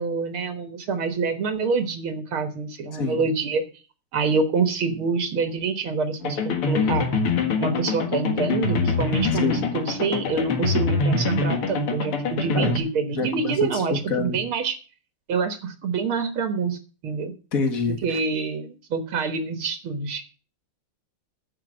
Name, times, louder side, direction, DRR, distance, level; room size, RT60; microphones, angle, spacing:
voice 1, 0.0-3.7 4.1-7.2 7.6-14.8 15.3-16.8 17.0-17.3 18.0-20.2, right 4 dB, 75° right, 7 dB, 2.3 m, -26 dB
sound 1, 6.2-12.8, left 4 dB, 80° left, 2.6 m, -24 dB
voice 2, 12.5-14.4 17.5-18.0, left 4 dB, 40° left, 6 dB, 2.1 m, -27 dB
11.0 x 8.1 x 6.5 m, 0.35 s
omnidirectional pair, 2.4 m